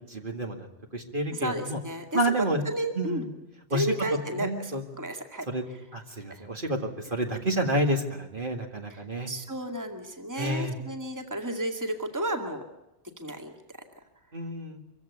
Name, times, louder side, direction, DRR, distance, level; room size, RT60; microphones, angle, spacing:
voice 1, 0.1-0.7 0.9-1.8 2.1-2.6 3.0-3.3 3.7-3.9 4.3-4.8 5.5-5.6 5.9-9.3 10.4-10.8 14.3-14.8, right 1 dB, 45° right, 2 dB, 2.2 m, -29 dB
voice 2, 1.3-2.2 2.7-3.3 3.7-5.5 6.3-6.4 8.9-12.6 13.2-13.5, equal, 15° right, 3 dB, 2.1 m, -33 dB
25.0 x 16.0 x 9.4 m, 0.96 s
omnidirectional pair, 1.2 m